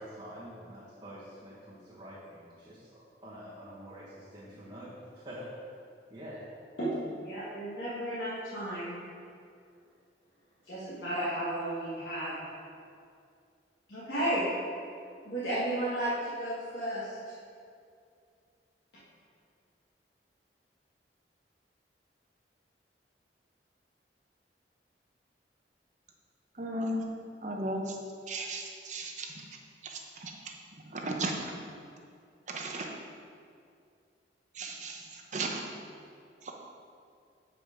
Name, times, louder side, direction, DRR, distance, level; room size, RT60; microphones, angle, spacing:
voice 1, 0.0-4.9 5.2-5.5 6.1-6.5, equal, 25° right, -10 dB, 1.4 m, -46 dB
voice 2, 6.8-9.0 10.6-12.3 13.9-14.5 15.2-17.3, right 1 dB, 75° left, -10 dB, 1.6 m, -33 dB
voice 3, 26.6-27.1 27.4-28.0 28.3-29.3 29.8-30.3 30.9-31.3 32.5-33.0 34.5-35.6 36.4-36.5, right 2 dB, 45° right, 1 dB, 0.8 m, -35 dB
7.3 x 5.1 x 5.0 m, 2.3 s
head